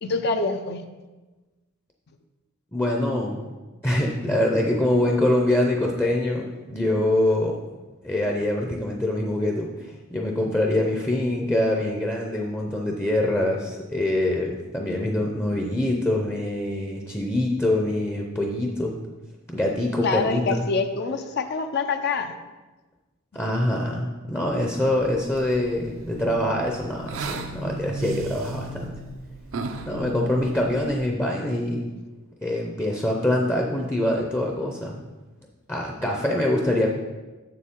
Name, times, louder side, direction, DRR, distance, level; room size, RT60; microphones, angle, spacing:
voice 1, 0.0-0.8 20.0-22.3 27.5-27.6, left 4 dB, 55° left, 7 dB, 0.5 m, -26 dB
voice 2, 2.7-3.5 3.8-7.6 8.0-19.0 19.5-20.6 23.3-28.9 29.8-31.9 32.4-35.0 35.7-36.9, left 1 dB, 10° left, 0 dB, 0.6 m, -24 dB
sound 1, 24.8-31.1, right 2 dB, 80° right, 0.6 m, -35 dB
7.0 x 6.8 x 3.7 m, 1.2 s
head